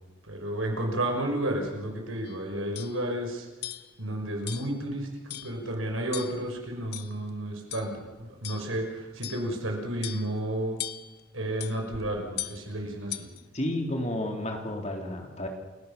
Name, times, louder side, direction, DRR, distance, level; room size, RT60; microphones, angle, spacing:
voice 1, 0.3-3.5 4.0-10.8 11.3-13.3, right 1 dB, 85° right, 2 dB, 5.7 m, -32 dB
sound 1, 2.2-2.4 2.7-3.0 3.6-3.9 4.5-4.8 5.3-5.6 6.1-6.5 6.9-7.3 7.7-7.9 8.4-8.7 9.2-9.5 10.0-10.4 10.8-11.2 11.6-11.8 12.4-12.6 13.1-13.4, left 13 dB, 50° left, 0.9 m, -38 dB
voice 2, 13.5-15.5, left 1 dB, 35° left, 2 dB, 3.5 m, -31 dB
29.0 x 17.0 x 6.9 m, 1.1 s
head